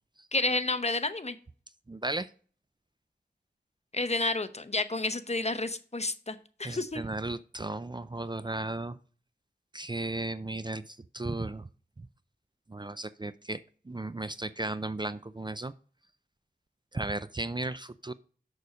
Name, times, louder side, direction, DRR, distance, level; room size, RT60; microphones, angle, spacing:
voice 1, 0.3-1.4 3.9-7.0, left 2 dB, 40° left, 11 dB, 0.8 m, -30 dB
voice 2, 1.9-2.3 6.6-9.0 9.7-11.7 12.7-15.7 16.9-18.1, right 2 dB, 25° right, 14 dB, 0.4 m, -35 dB
6.9 x 6.5 x 4.8 m, 0.43 s
wide cardioid pair, 50°, 18 cm